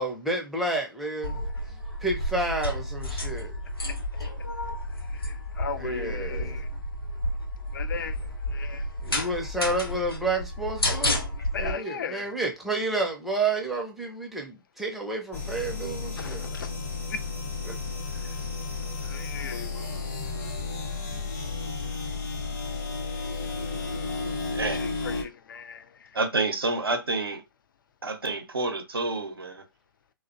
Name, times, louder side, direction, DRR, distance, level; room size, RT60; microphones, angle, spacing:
voice 1, 0.0-1.4 2.0-3.6 5.7-6.6 9.0-16.4 17.6-17.8, right 2 dB, ahead, 0.4 m, -30 dB
sound 1, 1.2-11.7, left 1 dB, 90° left, 0.8 m, -31 dB
voice 2, 5.2-6.7 7.7-8.2 8.5-8.8 11.5-12.3 16.2-16.7 17.1-17.2 19.0-19.9 24.7-25.8, left 6 dB, 60° left, 0.4 m, -37 dB
sound 2, 15.3-25.2, left 3 dB, 45° left, 0.8 m, -33 dB
voice 3, 24.5-24.9 26.1-27.4 28.0-29.6, right 3 dB, 85° right, 0.6 m, -28 dB
2.4 x 2.1 x 2.5 m
figure-of-eight pair, 125°, 12 cm